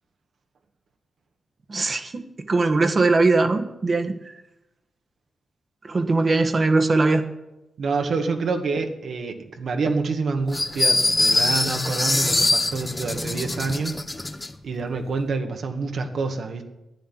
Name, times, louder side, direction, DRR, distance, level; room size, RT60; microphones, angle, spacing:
voice 1, 1.7-4.4 5.8-7.2, right 3 dB, 40° right, 6 dB, 1.6 m, -21 dB
voice 2, 7.8-14.0 14.6-16.6, right 4 dB, 70° right, 4 dB, 2.0 m, -27 dB
sound 1, 10.5-14.5, left 2 dB, 20° left, 0.9 m, -23 dB
11.5 x 9.9 x 10.0 m, 0.96 s
cardioid pair, 75°, 0 cm